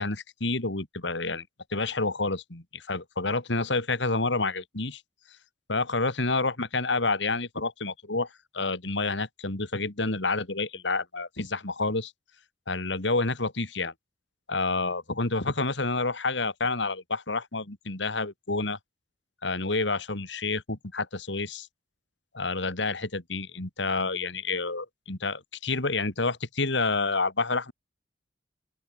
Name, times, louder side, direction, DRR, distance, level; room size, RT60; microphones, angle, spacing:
voice 1, 0.0-1.5 1.7-5.0 5.7-12.1 12.7-13.9 14.5-18.8 19.4-21.7 22.3-27.7, left 3 dB, 70° left, 2.7 m, -29 dB
open air
head